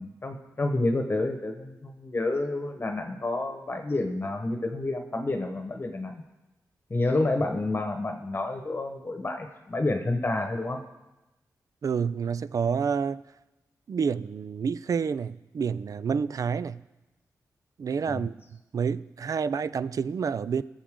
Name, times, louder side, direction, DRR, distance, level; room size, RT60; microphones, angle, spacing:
voice 1, 0.0-6.2 6.9-10.8 18.1-18.3, left 2 dB, 35° left, 1.1 m, -29 dB
voice 2, 11.8-13.2 13.9-16.8 17.8-18.3 18.7-20.6, right 6 dB, 60° right, 0.4 m, -28 dB
21.0 x 7.2 x 3.7 m
cardioid pair, 80°, 7 cm